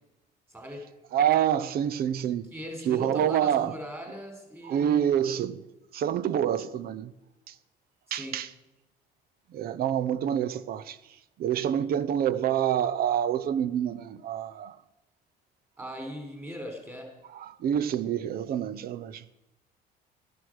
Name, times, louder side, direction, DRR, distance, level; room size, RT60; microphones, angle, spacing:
voice 1, 0.5-0.9 2.5-5.1 8.1-8.4 15.8-17.1, equal, 15° right, 4.1 m, -39 dB
voice 2, 1.1-2.5 2.8-3.8 4.6-5.6 5.9-7.1 7.5-7.6 8.1-8.5 9.5-14.8 17.3-19.2, right 10 dB, 65° right, 0.8 m, -27 dB
13.5 x 11.0 x 6.5 m
cardioid pair, 110°, 17 cm